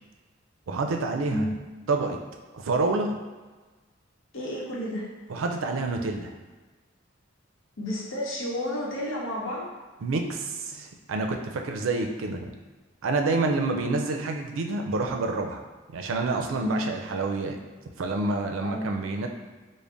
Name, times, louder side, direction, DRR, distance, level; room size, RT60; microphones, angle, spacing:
voice 1, 0.7-1.6 1.9-2.2 2.5-3.2 5.3-6.3 10.0-12.5 13.0-15.6 15.9-17.6 18.0-19.3, right 3 dB, 85° right, 3 dB, 0.4 m, -28 dB
voice 2, 4.3-5.0 7.8-9.6 16.6-16.9 18.6-18.9, left 1 dB, 85° left, -4 dB, 0.8 m, -31 dB
3.8 x 2.1 x 3.4 m, 1.3 s
head